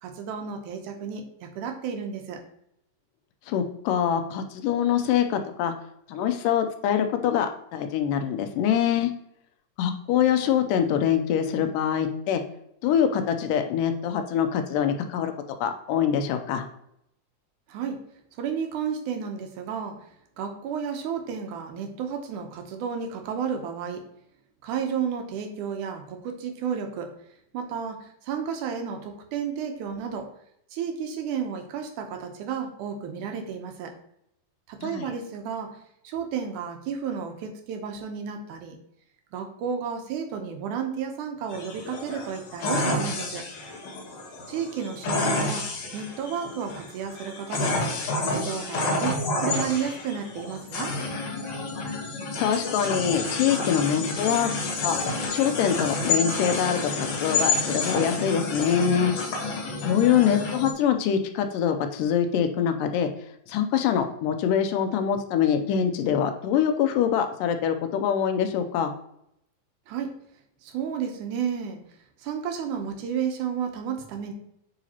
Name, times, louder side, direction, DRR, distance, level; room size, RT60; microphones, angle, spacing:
voice 1, 0.0-2.4 17.7-18.0 18.4-20.0 20.4-24.0 24.6-27.1 27.5-30.3 30.7-33.9 34.7-35.8 36.0-38.8 39.3-43.4 44.5-47.7 48.2-50.9 69.9-70.1 70.6-71.8 72.2-74.3, right 7 dB, 75° right, 4 dB, 2.2 m, -32 dB
voice 2, 3.5-5.7 6.1-9.1 9.8-12.4 12.8-15.3 15.6-16.7 34.8-35.1 52.4-54.5 54.8-55.0 55.3-56.8 57.1-59.1 59.8-63.1 63.5-68.9, left 8 dB, 85° left, 7 dB, 2.2 m, -24 dB
sound 1, 41.5-60.7, left 3 dB, 65° left, 2.1 m, -29 dB
8.8 x 3.9 x 2.8 m, 0.75 s
omnidirectional pair, 3.8 m